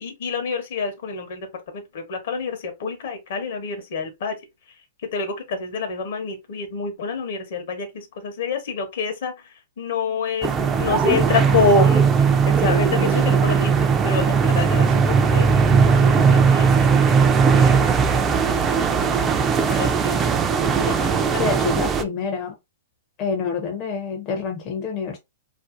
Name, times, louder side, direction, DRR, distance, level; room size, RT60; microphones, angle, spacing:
voice 1, 0.0-4.4 4.7-4.8 5.1-19.0 19.6-20.2 20.7-21.5, left 4 dB, 65° left, 0.8 m, -28 dB
sound 1, 10.4-22.0, right 5 dB, 20° right, 0.3 m, -18 dB
voice 2, 21.4-22.6 23.2-25.2, left 5 dB, 35° left, 0.5 m, -27 dB
2.5 x 2.1 x 2.4 m
hypercardioid pair, 135°, 0 cm